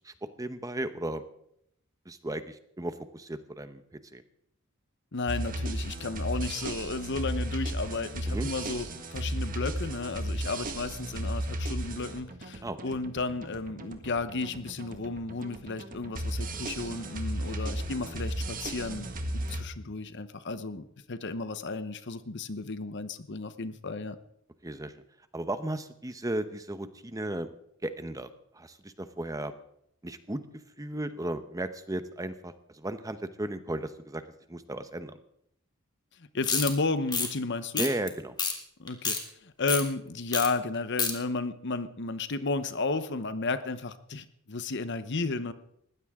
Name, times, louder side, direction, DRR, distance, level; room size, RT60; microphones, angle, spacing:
voice 1, 0.0-1.2 2.1-3.8 4.1-4.2 8.3-8.5 12.6-12.8 24.6-24.9 25.3-27.5 27.8-28.3 28.5-29.5 30.0-30.4 30.8-34.2 34.5-35.2 37.8-38.3, right 1 dB, 15° right, 10 dB, 0.9 m, -35 dB
voice 2, 5.1-8.9 9.1-19.1 19.3-24.2 36.2-37.9 38.8-45.5, left 3 dB, 55° left, 12 dB, 1.0 m, -33 dB
sound 1, 5.3-19.6, right 1 dB, 40° right, 1.8 m, -35 dB
sound 2, 36.4-36.7 37.1-37.3 37.8-38.1 38.4-38.5 38.9-39.2 39.7-39.8 40.3-40.5 40.7-41.1, left 5 dB, 20° left, 2.1 m, -28 dB
20.5 x 15.5 x 3.7 m, 0.71 s
head